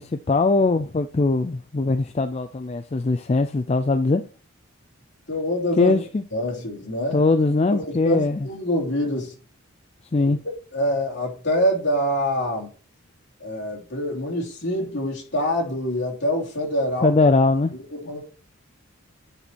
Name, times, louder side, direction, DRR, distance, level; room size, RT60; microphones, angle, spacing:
voice 1, 0.0-4.2 5.8-6.2 7.1-8.5 10.1-10.4 17.0-17.7, left 3 dB, 30° left, 0.4 m, -21 dB
voice 2, 5.3-6.0 6.3-7.2 7.7-9.3 10.2-10.3 10.7-12.7 13.4-17.1 17.7-18.2, left 1 dB, 55° left, 3.2 m, -25 dB
9.9 x 4.3 x 4.5 m
head